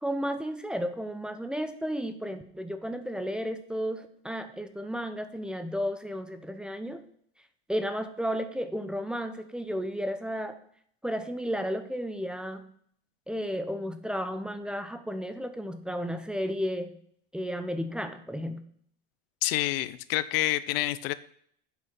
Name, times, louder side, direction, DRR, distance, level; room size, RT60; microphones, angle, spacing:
voice 1, 0.0-7.0 7.7-10.6 11.0-12.7 13.3-16.9 17.3-18.6, equal, 5° right, 9 dB, 0.8 m, -33 dB
voice 2, 19.4-21.1, left 16 dB, 75° left, 15 dB, 0.7 m, -28 dB
8.1 x 5.6 x 6.0 m, 0.63 s
supercardioid pair, 120°, 30 cm